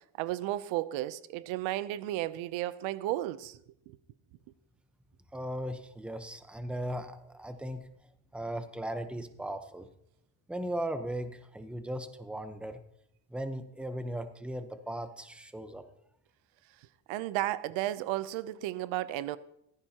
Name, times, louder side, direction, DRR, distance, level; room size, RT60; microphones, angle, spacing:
voice 1, 0.2-3.6 17.1-19.4, right 15 dB, 80° right, 0.8 m, -33 dB
voice 2, 5.3-7.8 8.3-9.9 10.5-12.8 13.3-15.8, right 1 dB, ahead, 0.9 m, -37 dB
17.5 x 15.0 x 2.9 m
cardioid pair, 120°, 46 cm